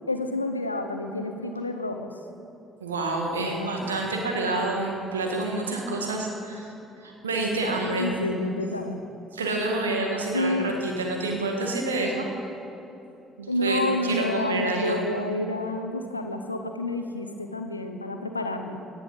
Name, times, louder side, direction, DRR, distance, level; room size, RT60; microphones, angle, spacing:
voice 1, 0.1-2.1 3.4-3.7 4.1-4.2 8.0-9.0 10.3-10.8 13.5-18.8, left 1 dB, 85° left, 6 dB, 0.7 m, -29 dB
voice 2, 2.8-8.1 9.3-12.3 13.4-15.0, right 2 dB, 80° right, 1 dB, 1.6 m, -28 dB
18.0 x 9.6 x 5.5 m, 2.8 s
figure-of-eight pair, 50°, 0 cm